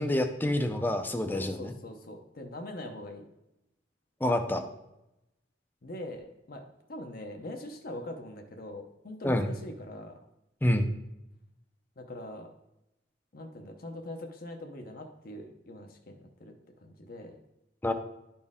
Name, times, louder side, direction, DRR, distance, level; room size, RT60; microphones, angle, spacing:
voice 1, 0.0-1.7 4.2-4.6 9.2-9.5 10.6-10.9 17.8-17.9, left 1 dB, 10° left, 7 dB, 0.5 m, -27 dB
voice 2, 1.3-3.2 5.8-6.6 6.9-10.2 12.0-12.5 13.3-16.5 16.8-17.4, left 1 dB, 50° left, 4 dB, 0.7 m, -42 dB
11.0 x 4.3 x 3.6 m, 0.90 s
head